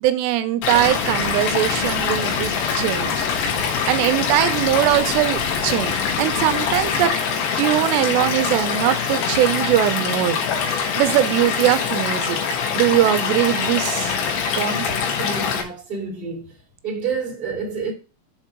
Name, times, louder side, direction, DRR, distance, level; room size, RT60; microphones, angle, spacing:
voice 1, 0.0-3.2 3.9-7.1 7.6-10.4 10.6-12.4 12.8-14.2 14.6-14.9, right 13 dB, 85° right, 2.8 m, -21 dB
Stream / Liquid, 0.6-15.6, left 6 dB, 90° left, 3.7 m, -24 dB
sound 1, 0.7-7.1, left 4 dB, 55° left, 1.9 m, -33 dB
voice 2, 15.2-16.5 16.8-17.9, right 5 dB, 15° right, 2.0 m, -28 dB
7.3 x 4.5 x 5.9 m
omnidirectional pair, 5.0 m